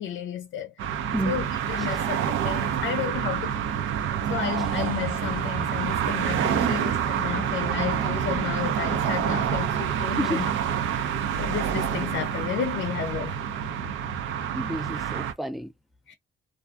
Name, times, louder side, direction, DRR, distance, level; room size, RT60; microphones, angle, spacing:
voice 1, 0.0-3.6 4.3-10.6 10.9-13.4 16.1-16.2, left 9 dB, 70° left, 0.5 m, -32 dB
sound 1, 0.8-15.3, right 9 dB, 80° right, 0.6 m, -27 dB
sound 2, 4.5-10.5 13.0-13.1, right 5 dB, 45° right, 0.8 m, -42 dB
voice 2, 14.6-15.7, equal, ahead, 0.4 m, -30 dB
2.4 x 2.4 x 2.4 m
cardioid pair, 90°, 20 cm